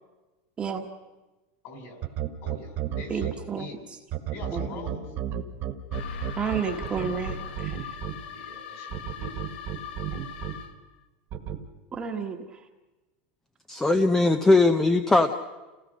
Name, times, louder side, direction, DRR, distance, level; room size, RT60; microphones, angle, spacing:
voice 1, 1.6-2.0 2.4-3.8 4.3-5.1 8.3-9.3, left 3 dB, 45° left, 5 dB, 4.5 m, -43 dB
sound 1, 2.0-3.3 4.1-8.1 8.9-10.5 11.3-11.6, right 11 dB, 35° right, 1.6 m, -31 dB
voice 2, 3.1-3.7 4.5-5.0 6.4-7.8 11.9-12.4, right 6 dB, 15° right, 2 dB, 1.4 m, -31 dB
sound 2, 5.9-10.9, left 6 dB, 80° left, 1.6 m, -39 dB
voice 3, 13.7-15.3, left 2 dB, 5° left, 8 dB, 0.7 m, -20 dB
28.5 x 16.5 x 6.6 m, 1.2 s
supercardioid pair, 160°, 6 cm